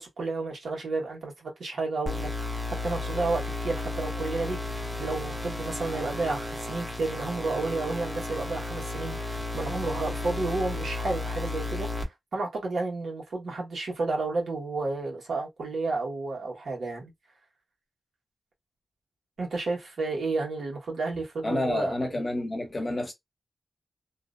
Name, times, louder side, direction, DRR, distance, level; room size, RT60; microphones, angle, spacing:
voice 1, 0.0-2.6 2.8-11.9 12.3-17.1 19.4-22.2, right 3 dB, 90° right, 1.2 m, -31 dB
sound 1, 2.1-12.0, left 2 dB, 5° right, 0.8 m, -33 dB
voice 2, 21.4-23.1, left 1 dB, 30° left, 0.9 m, -29 dB
2.6 x 2.1 x 2.4 m
wide cardioid pair, 90°, 0 cm